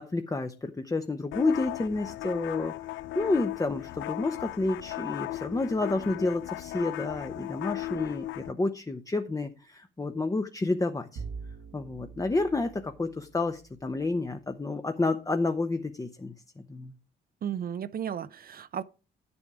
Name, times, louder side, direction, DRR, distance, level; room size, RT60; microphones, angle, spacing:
voice 1, 0.0-11.2 11.7-16.3 16.7-16.9, left 3 dB, 15° left, 0.8 m, -30 dB
sound 1, 1.3-8.5, left 16 dB, 75° left, 0.4 m, -36 dB
Bowed string instrument, 11.2-14.2, right 5 dB, 75° right, 1.3 m, -44 dB
voice 2, 17.4-18.8, right 8 dB, 50° right, 0.6 m, -34 dB
9.9 x 7.0 x 4.9 m
cardioid pair, 90°, 20 cm